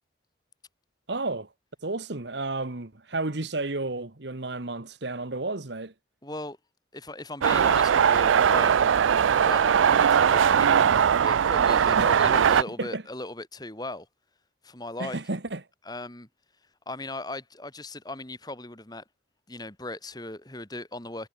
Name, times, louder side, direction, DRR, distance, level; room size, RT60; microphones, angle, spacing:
voice 1, 1.1-1.5 1.8-5.9 12.0-12.1 12.8-13.0 15.0-15.6, right 2 dB, 65° right, 1.5 m, -32 dB
voice 2, 6.2-6.6 6.9-8.8 9.3-14.1 14.6-15.2 15.8-16.3 16.9-19.0 19.5-21.3, left 2 dB, 20° left, 2.9 m, -38 dB
sound 1, 7.4-12.6, right 7 dB, 90° right, 0.4 m, -20 dB
head